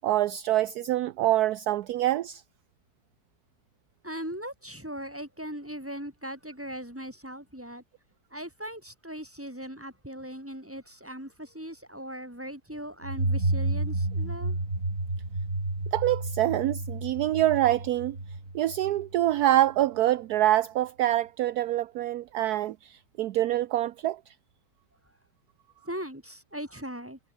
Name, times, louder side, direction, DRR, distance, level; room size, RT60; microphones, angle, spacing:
voice 1, 0.0-2.4 15.9-18.2 18.5-24.2, right 14 dB, 70° right, 1.1 m, -25 dB
voice 2, 4.0-7.8 8.3-14.6 25.8-27.2, equal, 5° right, 5.9 m, -39 dB
sound 1, 13.0-19.6, right 2 dB, 50° right, 5.9 m, -31 dB
omnidirectional pair, 1.8 m